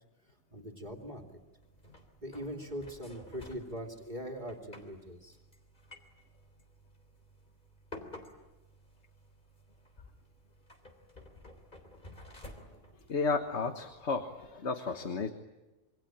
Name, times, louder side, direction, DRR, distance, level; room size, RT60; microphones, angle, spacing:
voice 1, 0.5-1.2 2.2-5.4, equal, 35° right, 2 dB, 2.8 m, -41 dB
sound 1, 0.9-14.5, left 2 dB, 40° left, 3.7 m, -54 dB
voice 2, 13.1-15.3, left 4 dB, 70° left, 6 dB, 1.7 m, -33 dB
27.0 x 24.0 x 8.9 m, 1.1 s
omnidirectional pair, 1.2 m